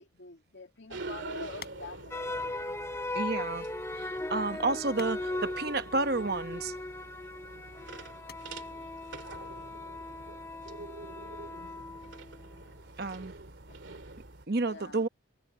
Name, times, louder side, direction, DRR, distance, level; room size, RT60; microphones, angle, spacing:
voice 1, 0.0-2.5 14.7-15.1, left 4 dB, 70° left, 2.2 m, -46 dB
sound 1, 0.7-10.4, left 6 dB, 55° left, 7.2 m, -57 dB
sound 2, 0.9-14.5, right 3 dB, 80° right, 2.4 m, -46 dB
sound 3, 2.1-12.5, left 2 dB, 15° left, 0.6 m, -38 dB
voice 2, 3.1-3.7 4.0-6.7 13.0-13.3 14.5-15.1, right 3 dB, 55° right, 1.0 m, -30 dB
head